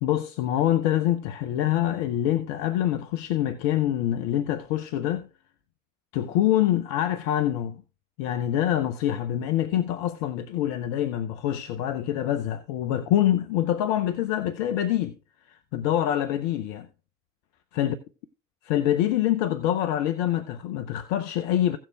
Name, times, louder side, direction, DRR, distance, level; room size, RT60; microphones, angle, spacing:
voice 1, 0.0-5.3 6.1-7.8 8.2-15.1 15.5-16.9 17.7-18.0 18.6-21.8, left 12 dB, 65° left, 0.8 m, -25 dB
16.5 x 7.3 x 2.3 m
figure-of-eight pair, 55°, 37 cm